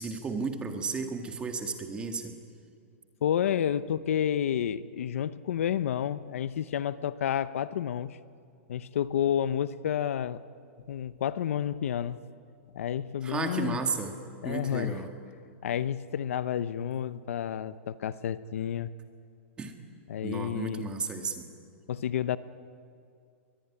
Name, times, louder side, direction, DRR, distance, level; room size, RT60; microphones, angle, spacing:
voice 1, 0.0-2.3 13.2-14.2 14.4-15.1 19.6-19.7 20.2-21.5, right 4 dB, 15° right, 5 dB, 1.8 m, -33 dB
voice 2, 3.2-8.2 8.7-10.4 10.9-12.2 12.7-13.8 14.4-15.0 15.6-18.9 20.1-20.9 21.9-22.4, left 9 dB, 75° left, 15 dB, 0.8 m, -30 dB
22.0 x 21.0 x 9.9 m, 2.3 s
supercardioid pair, 160°, 7 cm